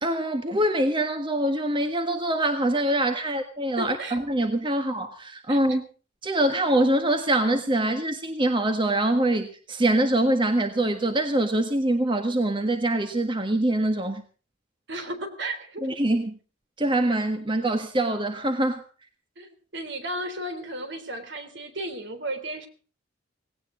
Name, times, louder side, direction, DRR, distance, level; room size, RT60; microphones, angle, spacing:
voice 1, 0.0-5.8 6.2-14.2 15.8-16.4 16.8-18.8, right 1 dB, 25° right, 6 dB, 1.6 m, -24 dB
voice 2, 3.8-4.2 5.5-5.6 14.9-15.9 19.4-22.7, right 1 dB, 60° right, 9 dB, 3.6 m, -34 dB
18.5 x 17.5 x 3.9 m, 0.38 s
head